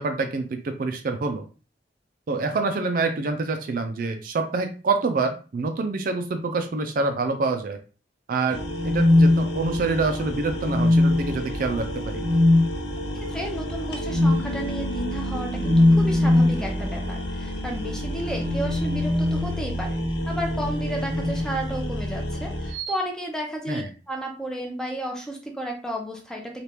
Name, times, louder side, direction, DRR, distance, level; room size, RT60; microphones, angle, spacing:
voice 1, 0.0-1.4 2.3-7.8 8.3-8.6 8.8-12.2 23.7-23.9, right 3 dB, 50° right, 6 dB, 0.4 m, -26 dB
sound 1, 8.5-22.7, equal, 85° left, 0.7 m, -30 dB
sound 2, 8.7-10.0 10.6-11.4 12.2-12.7 14.1-14.5 15.6-16.6 18.1-20.0 21.0-21.5 22.7-23.0, left 2 dB, 75° right, 0.7 m, -21 dB
voice 2, 13.1-20.0 20.3-26.6, right 1 dB, 5° left, 0 dB, 0.6 m, -32 dB
3.3 x 2.4 x 2.9 m, 0.35 s
head